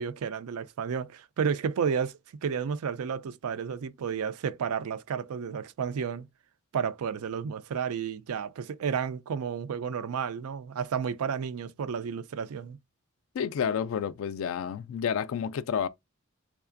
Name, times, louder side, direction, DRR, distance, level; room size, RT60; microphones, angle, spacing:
voice 1, 0.0-6.3 6.7-12.8, right 6 dB, 85° right, 0.4 m, -32 dB
voice 2, 13.3-15.9, left 7 dB, 65° left, 0.3 m, -30 dB
3.6 x 3.2 x 2.5 m
head